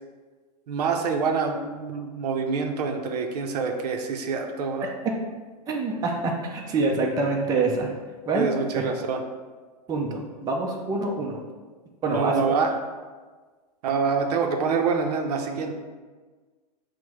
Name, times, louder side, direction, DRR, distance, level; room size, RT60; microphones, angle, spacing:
voice 1, 0.7-4.9 8.3-9.2 12.1-12.8 13.8-15.8, right 5 dB, 70° right, 4 dB, 0.6 m, -26 dB
voice 2, 5.7-7.9 8.3-8.5 9.9-11.4 12.0-12.5, right 3 dB, 20° right, 0 dB, 0.5 m, -26 dB
4.5 x 2.1 x 4.6 m, 1.4 s
hypercardioid pair, 125°, 21 cm